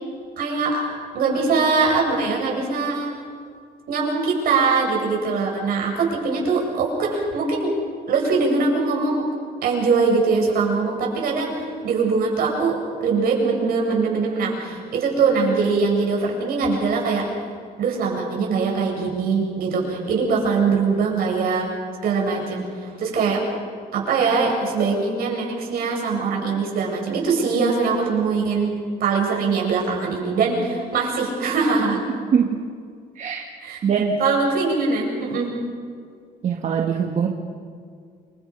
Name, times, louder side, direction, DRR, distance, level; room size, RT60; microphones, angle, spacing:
voice 1, 0.4-0.9 1.1-3.2 3.9-7.7 8.1-9.2 9.6-17.3 17.8-21.7 22.0-23.4 23.9-28.7 29.0-32.1 33.6-33.8 34.2-35.5, right 4 dB, 65° right, -1 dB, 8.0 m, -22 dB
voice 2, 33.8-34.2 36.4-37.3, right 7 dB, 45° right, 2 dB, 2.0 m, -22 dB
29.0 x 24.0 x 5.8 m, 2.1 s
cardioid pair, 120°, 17 cm